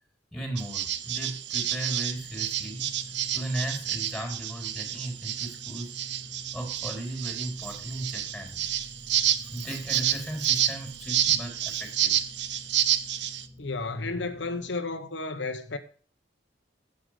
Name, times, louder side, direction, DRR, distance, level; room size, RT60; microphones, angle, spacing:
voice 1, 0.3-3.0 3.3-5.9 6.5-8.6 9.2-12.2, right 1 dB, ahead, 3.7 m, -36 dB
sound 1, 0.6-13.4, right 11 dB, 70° right, 0.8 m, -29 dB
sound 2, 2.2-14.7, left 1 dB, 25° left, 2.0 m, -48 dB
voice 2, 13.6-15.8, left 3 dB, 75° left, 1.0 m, -32 dB
10.0 x 8.0 x 4.9 m
head